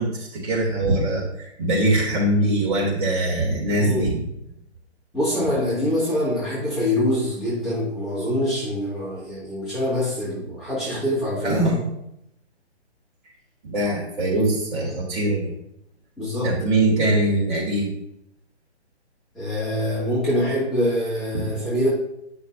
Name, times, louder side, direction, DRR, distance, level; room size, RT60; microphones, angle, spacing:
voice 1, 0.0-4.2 11.4-11.9 13.6-15.4 16.4-17.9 21.4-21.5, right 1 dB, 45° right, -3 dB, 3.0 m, -22 dB
voice 2, 3.8-4.1 5.1-11.6 16.2-16.5 19.3-21.9, left 1 dB, ahead, -12 dB, 2.3 m, -24 dB
9.2 x 6.2 x 2.8 m, 0.78 s
hypercardioid pair, 145°, 34 cm